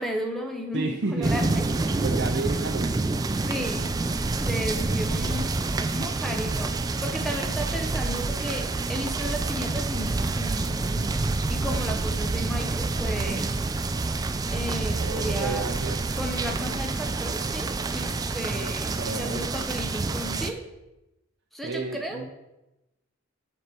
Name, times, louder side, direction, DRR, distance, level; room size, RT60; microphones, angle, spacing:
voice 1, 0.0-2.0 3.4-3.9 4.2-5.5 5.8-6.7 7.0-13.5 14.5-15.6 16.2-20.6 21.5-22.2, equal, ahead, 3 dB, 0.7 m, -34 dB
voice 2, 0.7-1.5 2.0-3.0 15.0-16.0 19.0-19.5 21.6-22.3, right 3 dB, 55° right, 1 dB, 0.6 m, -31 dB
sound 1, 1.2-20.5, right 3 dB, 20° right, 0.3 m, -28 dB
7.1 x 6.5 x 4.4 m, 0.96 s
head